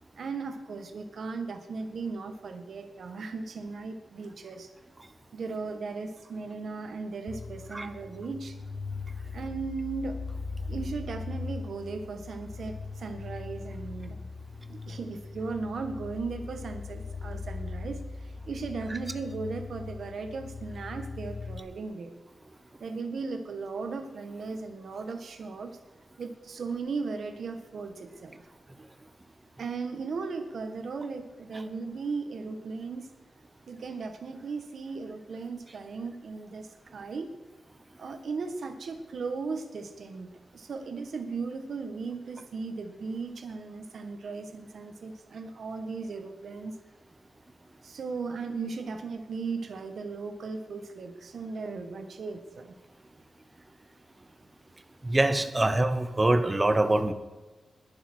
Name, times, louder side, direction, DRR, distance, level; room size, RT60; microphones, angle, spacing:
voice 1, 0.1-4.7 5.3-8.6 9.3-10.2 10.7-14.2 14.7-22.1 22.8-25.8 26.2-28.4 29.6-33.1 33.7-37.3 38.0-46.7 47.8-52.8 55.6-55.7, right 4 dB, 65° right, 7 dB, 1.6 m, -37 dB
sound 1, 7.3-21.6, left 4 dB, 45° left, 1.0 m, -40 dB
voice 2, 55.0-57.1, right 2 dB, 20° right, 10 dB, 1.0 m, -24 dB
20.5 x 7.0 x 6.4 m, 1.2 s
wide cardioid pair, 160°, 0 cm